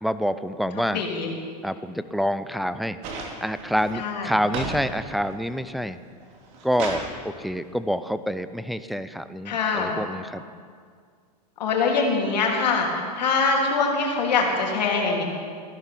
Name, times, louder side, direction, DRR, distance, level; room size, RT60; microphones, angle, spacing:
voice 1, 0.0-1.0 1.6-6.0 6.6-10.4, equal, ahead, 12 dB, 0.3 m, -27 dB
voice 2, 0.9-1.3 4.0-4.3 9.5-9.9 11.6-15.2, left 4 dB, 85° left, 0 dB, 3.1 m, -23 dB
sound 1, 3.0-4.8 5.2-5.7 6.2-7.1 8.3-8.4, right 3 dB, 50° right, 2.8 m, -34 dB
15.0 x 11.5 x 5.8 m, 2.1 s
supercardioid pair, 130°, 21 cm